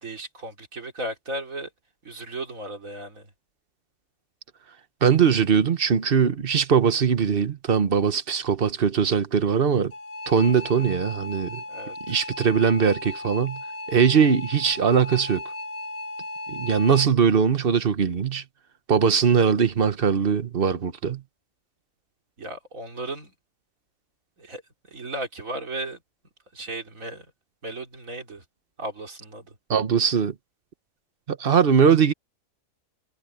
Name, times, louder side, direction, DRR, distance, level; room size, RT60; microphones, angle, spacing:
voice 1, 0.0-1.7 2.0-3.3 11.7-12.2 22.4-23.3 24.4-24.6 24.9-26.0 26.5-27.3 27.6-28.4 28.8-29.6, right 1 dB, 75° right, 3.8 m, -35 dB
voice 2, 5.0-9.9 10.3-11.6 12.1-13.6 13.9-15.4 16.5-18.4 18.9-21.2 29.7-30.3 31.3-32.1, right 7 dB, 45° right, 1.2 m, -21 dB
sound 1, 9.9-17.1, left 2 dB, 80° left, 2.5 m, -36 dB
omnidirectional pair, 1.4 m